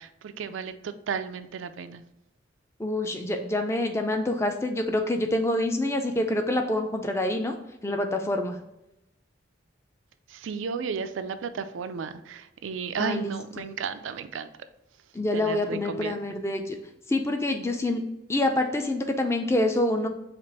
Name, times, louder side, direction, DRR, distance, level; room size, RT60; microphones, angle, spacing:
voice 1, 0.0-2.0 10.3-14.5 15.3-16.2, right 5 dB, 80° right, 11 dB, 0.4 m, -33 dB
voice 2, 2.8-7.6 7.8-8.6 13.0-13.6 15.1-16.8 17.1-18.0 18.3-20.1, left 1 dB, 15° left, 5 dB, 0.4 m, -26 dB
5.2 x 2.5 x 4.0 m, 0.91 s
head